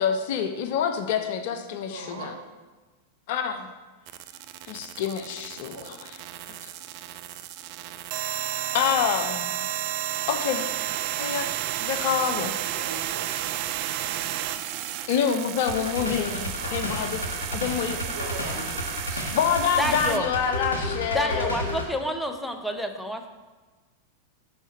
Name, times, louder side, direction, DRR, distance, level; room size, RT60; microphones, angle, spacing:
voice 1, 0.0-2.4 3.3-3.7 4.7-6.2 6.6-6.7 8.7-9.5 10.3-10.7 11.2-11.5 11.8-12.5 15.1-17.2 17.5-18.0 19.1-21.5, left 8 dB, 50° left, 7 dB, 0.4 m, -27 dB
voice 2, 1.9-2.3 5.5-5.9 12.7-13.2 16.0-16.1 18.0-18.8, right 2 dB, 65° right, 0 dB, 1.4 m, -39 dB
sound 1, 4.1-20.2, right 12 dB, 45° right, 0.3 m, -32 dB
sound 2, 15.7-21.9, left 1 dB, 70° left, 1.1 m, -32 dB
voice 3, 19.8-20.3 21.1-23.3, equal, ahead, 5 dB, 0.6 m, -29 dB
5.6 x 4.5 x 4.4 m, 1.3 s
figure-of-eight pair, 90°, 0 cm